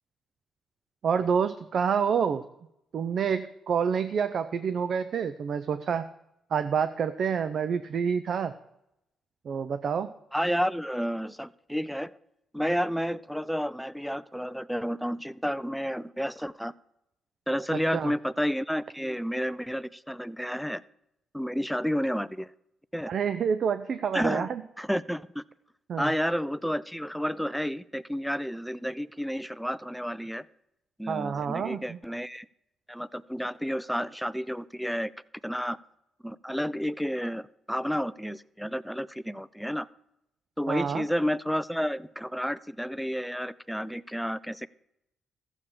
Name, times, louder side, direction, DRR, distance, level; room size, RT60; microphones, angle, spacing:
voice 1, 1.0-2.5 2.9-6.1 6.5-8.5 9.4-10.1 17.9-18.1 23.1-24.6 25.9-26.1 31.1-32.0 40.7-41.0, right 7 dB, 55° right, 11 dB, 0.6 m, -28 dB
voice 2, 10.3-12.2 12.5-16.7 17.5-20.8 21.3-22.5 22.9-23.1 24.1-24.5 24.8-25.4 26.0-30.4 31.0-32.5 32.9-35.1 35.4-35.8 36.2-39.9 40.6-44.7, equal, ahead, 16 dB, 0.5 m, -31 dB
14.0 x 7.2 x 6.7 m, 0.83 s
cardioid pair, 90°, 0 cm